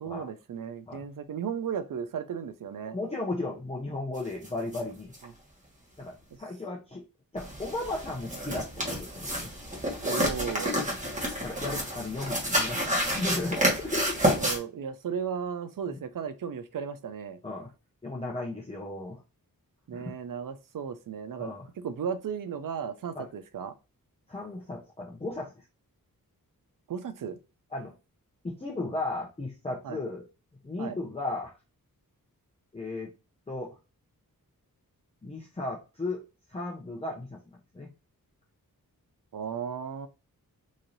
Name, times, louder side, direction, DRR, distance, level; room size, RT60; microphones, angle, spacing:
voice 1, 0.0-3.0 5.2-5.3 10.0-10.7 14.4-17.4 19.9-23.7 26.9-27.4 29.8-30.0 30.8-31.0 39.3-40.1, right 7 dB, 65° right, 0.6 m, -35 dB
voice 2, 2.8-5.1 6.0-6.1 6.4-7.0 7.3-9.5 11.4-14.2 15.9-16.0 17.4-17.7 18.0-19.2 19.9-20.1 21.4-21.7 23.1-23.2 24.3-25.5 27.7-27.9 28.4-30.3 30.6-31.5 32.7-33.1 33.5-33.7 35.2-36.2 36.5-37.4 37.7-37.9, left 2 dB, 15° left, 0.7 m, -35 dB
sound 1, 4.4-4.5 4.7-4.8 5.1-5.2 7.4-14.6, equal, 20° right, 1.2 m, -29 dB
3.1 x 2.7 x 3.9 m
wide cardioid pair, 100°, 36 cm